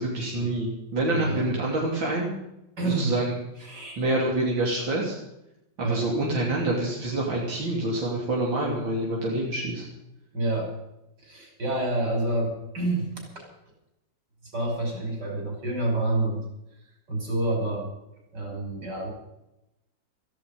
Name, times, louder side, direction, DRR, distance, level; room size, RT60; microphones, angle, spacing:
voice 1, 0.0-2.3 2.9-3.4 4.0-5.2 5.9-9.9, right 1 dB, 90° right, -3 dB, 3.8 m, -27 dB
voice 2, 1.1-1.4 2.8-3.1 3.6-4.0 5.8-6.0 9.3-9.6 10.3-10.7 11.2-13.1 14.5-16.4 17.1-17.9 18.3-19.1, right 2 dB, 60° right, 1 dB, 6.3 m, -28 dB
16.5 x 15.0 x 5.4 m, 0.87 s
omnidirectional pair, 2.0 m